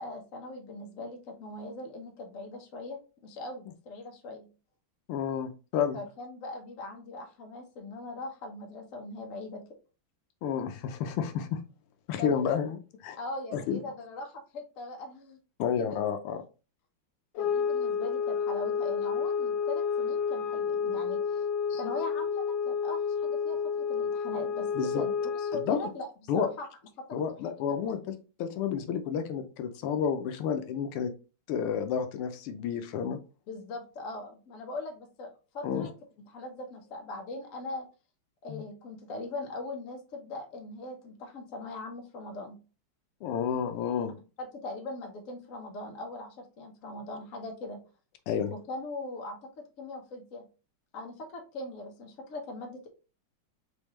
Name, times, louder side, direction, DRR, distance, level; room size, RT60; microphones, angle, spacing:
voice 1, 0.0-4.5 5.9-9.6 12.2-12.5 13.2-15.4 15.8-16.0 17.4-21.5 21.8-24.7 24.9-26.7 27.0-27.1 27.3-27.4 27.7-27.8 33.5-35.9 36.2-37.9 38.4-42.6 44.4-47.8 48.5-49.5 49.8-50.5 50.9-52.9, left 2 dB, 45° left, 3 dB, 1.2 m, -40 dB
voice 2, 5.1-6.0 10.4-11.6 12.1-13.2 13.5-13.8 15.6-16.4 21.7-21.8 24.7-25.0 25.5-25.8 26.3-26.5 27.1-28.1 28.4-31.1 31.5-33.2 35.6-35.9 38.5-38.6 43.2-44.1 48.3-48.5, left 7 dB, 85° left, 8 dB, 1.6 m, -30 dB
sound 1, 17.4-25.7, left 6 dB, 70° left, 1.2 m, -30 dB
4.6 x 3.5 x 3.1 m, 0.33 s
omnidirectional pair, 2.4 m